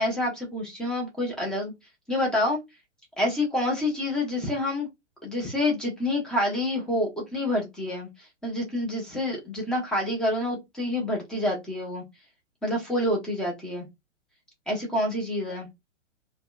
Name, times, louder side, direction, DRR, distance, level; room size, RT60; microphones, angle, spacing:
voice 1, 0.0-1.7 2.1-2.6 3.2-4.9 5.2-8.1 8.4-12.0 12.6-13.9 14.7-15.7, left 1 dB, ahead, 0.6 m, -27 dB
2.6 x 2.2 x 2.3 m
figure-of-eight pair, 115°, 37 cm